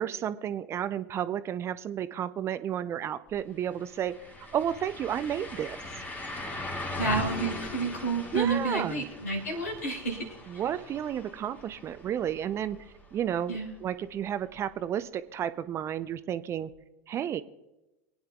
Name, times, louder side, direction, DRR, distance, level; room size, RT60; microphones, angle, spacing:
voice 1, 0.0-4.2 4.5-5.8 8.3-9.0 10.5-12.8 13.1-16.7 17.1-17.4, right 9 dB, 30° right, 14 dB, 0.5 m, -32 dB
sound 1, 3.3-3.4 3.7-13.5 13.9-14.0 16.7-16.8, left 1 dB, 20° left, 2.0 m, -40 dB
voice 2, 6.9-10.4 13.5-13.8, right 3 dB, 75° left, 0 dB, 3.1 m, -30 dB
23.0 x 9.5 x 2.3 m, 0.97 s
figure-of-eight pair, 80°, 9 cm